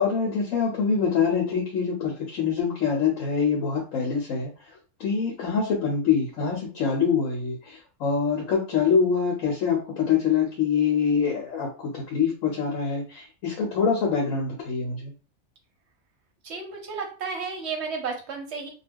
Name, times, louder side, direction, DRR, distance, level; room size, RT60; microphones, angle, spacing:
voice 1, 0.0-4.5 5.0-11.7 11.9-15.1, left 6 dB, 65° left, 0 dB, 0.9 m, -25 dB
voice 2, 16.4-18.7, right 5 dB, 55° right, 2 dB, 0.8 m, -32 dB
2.4 x 2.3 x 3.3 m, 0.37 s
omnidirectional pair, 1.6 m